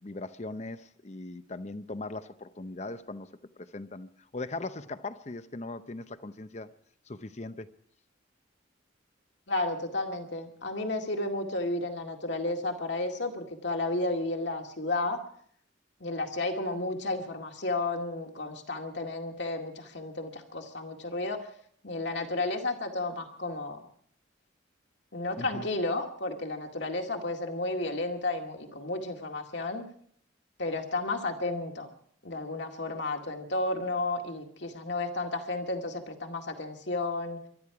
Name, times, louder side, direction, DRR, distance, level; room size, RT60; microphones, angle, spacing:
voice 1, 0.0-6.7 7.1-7.7 25.4-25.7, left 2 dB, 35° left, 12 dB, 0.7 m, -39 dB
voice 2, 9.5-15.2 16.0-21.5 21.8-23.8 25.1-29.8 30.6-31.9 32.2-37.4, left 2 dB, 65° left, 3 dB, 2.1 m, -32 dB
23.0 x 12.5 x 4.9 m, 0.63 s
head